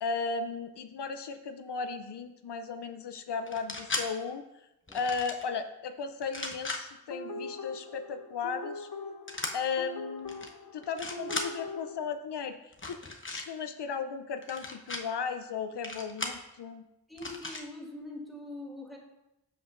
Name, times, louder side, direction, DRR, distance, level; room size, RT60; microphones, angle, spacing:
voice 1, 0.0-4.4 4.9-8.9 9.5-10.4 10.7-12.6 12.9-13.0 13.3-16.8, left 5 dB, 85° left, 8 dB, 0.5 m, -35 dB
sound 1, 3.5-4.1 4.9-5.4 6.2-6.8 9.3-9.5 10.3-10.5 10.8-11.5 12.7-13.5 14.4-15.0 15.8-16.4 17.2-17.6, left 2 dB, 30° left, 0.9 m, -36 dB
sound 2, 7.1-11.9, left 2 dB, 60° left, 0.9 m, -41 dB
voice 2, 17.1-19.0, left 2 dB, ahead, -2 dB, 2.4 m, -43 dB
13.5 x 5.1 x 2.5 m, 0.90 s
cardioid pair, 40°, 40 cm